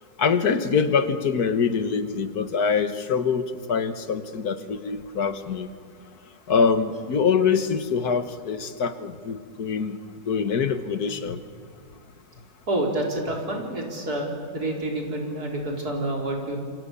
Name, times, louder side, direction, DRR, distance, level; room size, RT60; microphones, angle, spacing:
voice 1, 0.2-5.7 6.5-10.0 10.3-11.4, left 6 dB, 80° left, 10 dB, 1.9 m, -24 dB
voice 2, 12.7-16.6, right 1 dB, 80° right, 0 dB, 4.8 m, -28 dB
28.0 x 25.5 x 7.0 m, 2.2 s
omnidirectional pair, 1.6 m